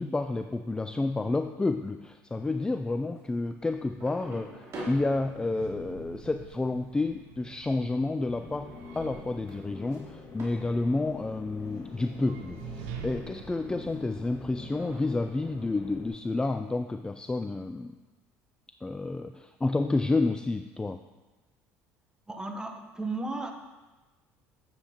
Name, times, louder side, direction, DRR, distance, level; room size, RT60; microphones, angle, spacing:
voice 1, 0.0-17.9 18.8-21.0, left 2 dB, 10° left, 8 dB, 0.3 m, -30 dB
sound 1, 2.9-3.4 3.9-11.1 11.4-11.6 12.0-12.7 13.0-14.1 14.4-15.7, right 1 dB, 50° right, 2.5 m, -48 dB
sound 2, 3.5-15.7, right 7 dB, 85° right, 0.7 m, -48 dB
sound 3, 8.3-16.1, left 3 dB, 45° left, 2.1 m, -45 dB
voice 2, 22.3-23.5, right 2 dB, 10° right, 4 dB, 1.0 m, -34 dB
8.8 x 7.5 x 2.9 m, 1.2 s
supercardioid pair, 85°, 6 cm